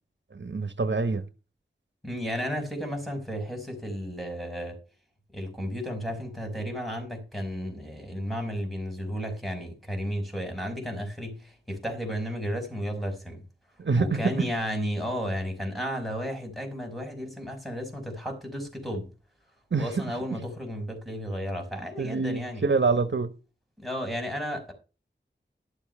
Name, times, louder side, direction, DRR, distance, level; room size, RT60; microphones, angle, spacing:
voice 1, 0.3-1.2 13.8-14.2 19.7-19.9 22.0-23.3, right 4 dB, 80° right, 1.2 m, -26 dB
voice 2, 2.0-4.8 5.3-13.4 14.0-19.1 19.8-22.6 23.8-24.7, equal, ahead, 5.4 m, -33 dB
12.0 x 7.1 x 5.5 m
wide cardioid pair, 60°, 19 cm